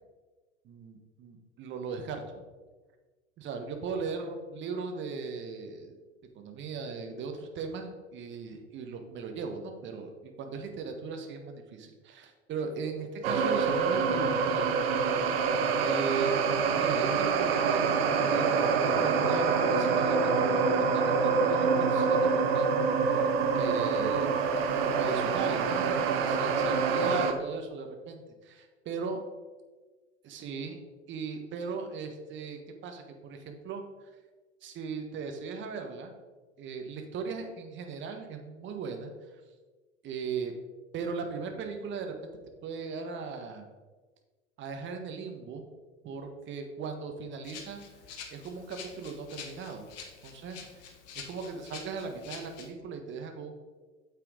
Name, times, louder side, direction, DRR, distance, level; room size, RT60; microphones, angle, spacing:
voice 1, 0.6-2.4 3.4-6.0 6.3-14.7 15.8-16.4 16.7-17.8 18.2-20.5 20.8-22.3 22.5-24.4 24.8-25.9 26.2-29.2 30.2-30.8 31.1-33.8 34.6-36.1 36.6-39.4 40.0-40.5 40.9-42.3 42.6-43.6 44.6-45.6 46.0-47.8 48.3-49.8 50.2-50.6 51.1-53.5, right 5 dB, 30° right, 5 dB, 1.4 m, -38 dB
sound 1, 13.2-27.3, right 5 dB, 55° right, 1.0 m, -26 dB
Rattle (instrument), 47.4-52.7, left 6 dB, 40° left, 1.4 m, -47 dB
9.0 x 7.3 x 4.0 m, 1.3 s
figure-of-eight pair, 85°, 36 cm